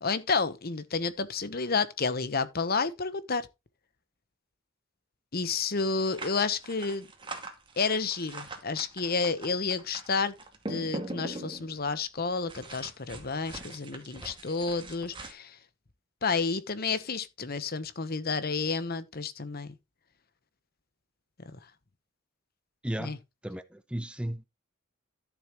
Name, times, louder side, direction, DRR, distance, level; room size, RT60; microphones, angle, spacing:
voice 1, 0.0-3.5 5.3-7.1 7.8-10.3 10.7-15.6 16.2-19.7 21.5-21.6 23.0-23.2, left 4 dB, 45° left, 1.0 m, -30 dB
sound 1, 6.0-11.9 12.5-15.3, right 2 dB, 25° right, 2.1 m, -42 dB
voice 2, 22.8-23.2 23.4-24.4, right 1 dB, 5° right, 0.5 m, -34 dB
13.0 x 7.2 x 3.0 m
head